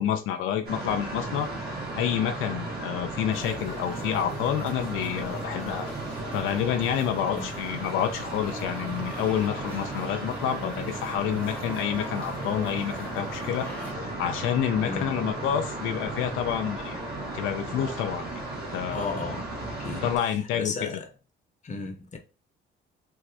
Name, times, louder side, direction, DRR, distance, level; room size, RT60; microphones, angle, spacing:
voice 1, 0.0-1.5 2.0-5.9 6.3-17.0 17.3-19.2 20.0-20.9, left 9 dB, 90° left, 0.5 m, -28 dB
sound 1, 0.6-20.2, right 2 dB, 50° right, 1.5 m, -35 dB
sound 2, 3.3-13.9, left 1 dB, 5° left, 0.9 m, -46 dB
voice 2, 7.2-7.6 14.8-15.2 18.9-19.5 19.8-20.2 20.5-21.1 21.6-22.2, left 3 dB, 35° left, 0.8 m, -35 dB
3.3 x 2.6 x 3.3 m
cardioid pair, 90°, 20 cm